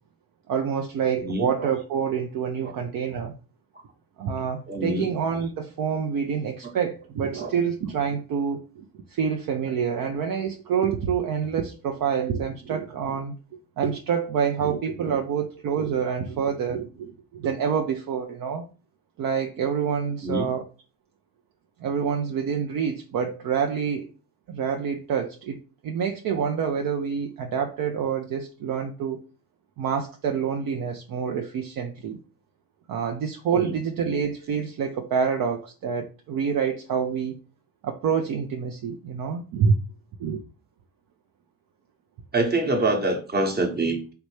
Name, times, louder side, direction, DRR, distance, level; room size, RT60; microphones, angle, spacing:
voice 1, 0.5-3.3 4.2-18.6 19.2-20.6 21.8-24.1 24.5-25.6 25.8-29.2 29.8-32.2 32.9-37.4 37.8-39.8 40.2-40.4, right 7 dB, 45° right, 0.6 m, -27 dB
voice 2, 1.2-1.7 2.6-2.7 4.7-5.1 7.4-7.5 20.2-20.5 33.5-33.7 42.3-44.0, right 2 dB, 20° right, 1.0 m, -25 dB
3.3 x 2.4 x 3.2 m
hypercardioid pair, 45°, 48 cm